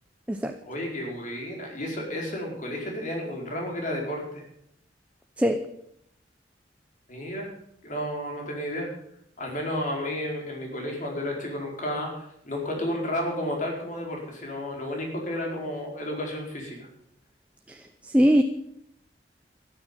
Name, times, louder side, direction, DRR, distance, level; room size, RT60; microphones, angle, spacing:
voice 1, 0.7-4.4 7.1-7.5 7.8-8.9 9.4-16.9, left 1 dB, 45° left, 0 dB, 4.7 m, -32 dB
voice 2, 17.7-18.4, equal, 5° right, 5 dB, 0.8 m, -22 dB
13.0 x 12.0 x 7.5 m, 0.75 s
head